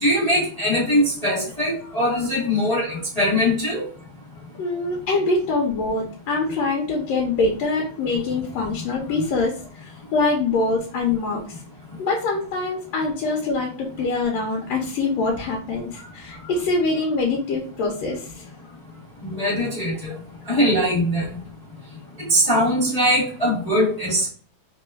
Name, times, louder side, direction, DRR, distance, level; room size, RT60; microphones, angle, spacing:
voice 1, 0.0-3.8 19.2-20.1 20.5-21.2 22.2-24.3, equal, 30° left, -7 dB, 0.6 m, -21 dB
voice 2, 4.6-11.6 12.0-18.5, left 3 dB, 70° left, -1 dB, 1.8 m, -24 dB
4.2 x 3.5 x 2.3 m, 0.43 s
omnidirectional pair, 3.4 m